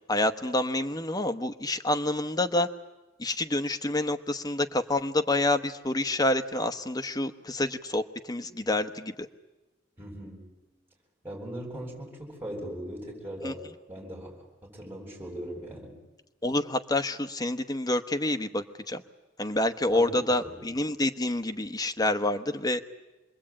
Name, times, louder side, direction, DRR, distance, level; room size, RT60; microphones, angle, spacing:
voice 1, 0.1-2.7 3.2-9.3 13.4-13.5 16.4-19.0 19.4-22.8, left 1 dB, 20° left, 7 dB, 1.1 m, -28 dB
voice 2, 10.0-10.5 11.2-15.9 19.9-20.5, equal, 10° right, -1 dB, 7.9 m, -39 dB
27.0 x 21.5 x 8.8 m, 1.1 s
head